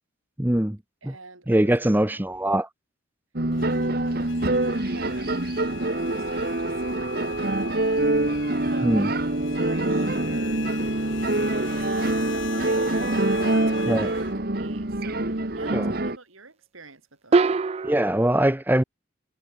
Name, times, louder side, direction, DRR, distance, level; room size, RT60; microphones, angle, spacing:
voice 1, 0.4-0.8 1.0-1.1 1.5-2.7 8.8-9.1 13.9-14.1 15.7-15.9 17.8-18.8, right 1 dB, 10° right, 0.7 m, -22 dB
voice 2, 1.0-2.3 3.6-8.1 8.7-10.7 10.9-17.5, right 3 dB, 90° right, 5.8 m, -46 dB
sound 1, 3.4-16.2, right 1 dB, 50° right, 1.7 m, -25 dB
sound 2, 3.5-14.3, left 7 dB, 70° left, 7.2 m, -41 dB
sound 3, 12.7-13.3 17.3-18.3, right 4 dB, 30° right, 0.3 m, -24 dB
head